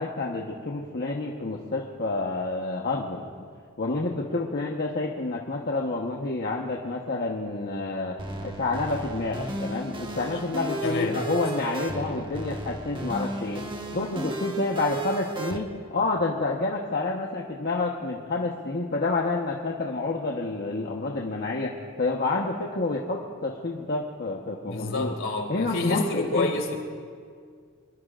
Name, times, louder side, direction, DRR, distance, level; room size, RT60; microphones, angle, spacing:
voice 1, 0.0-3.2 3.8-8.1 8.4-13.6 13.9-25.2 25.5-26.5, left 3 dB, 45° left, -1 dB, 1.2 m, -29 dB
sound 1, 8.2-15.6, right 2 dB, 20° right, 1.4 m, -34 dB
voice 2, 10.8-11.2 24.7-26.8, left 3 dB, 60° left, 3 dB, 2.5 m, -28 dB
26.0 x 22.0 x 2.5 m, 2.1 s
head